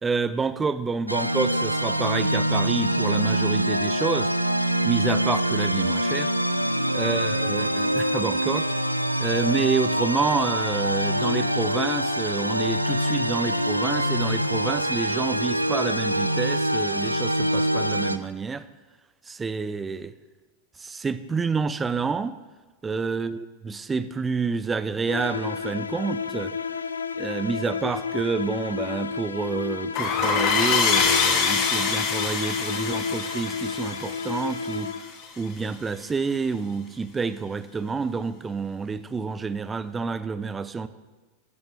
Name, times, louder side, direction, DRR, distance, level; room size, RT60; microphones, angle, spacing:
voice 1, 0.0-4.3 4.8-6.3 6.9-8.7 9.2-18.6 19.3-20.1 20.8-22.4 22.8-26.5 27.2-34.9 35.4-40.9, right 4 dB, 15° right, 14 dB, 0.6 m, -28 dB
sound 1, 1.1-18.2, equal, 90° right, 0.5 m, -25 dB
sound 2, 25.1-35.3, left 6 dB, 75° left, 0.5 m, -31 dB
sound 3, 29.9-35.3, left 5 dB, 35° left, 1.6 m, -25 dB
13.0 x 12.0 x 3.5 m, 1.2 s
figure-of-eight pair, 90°, 0 cm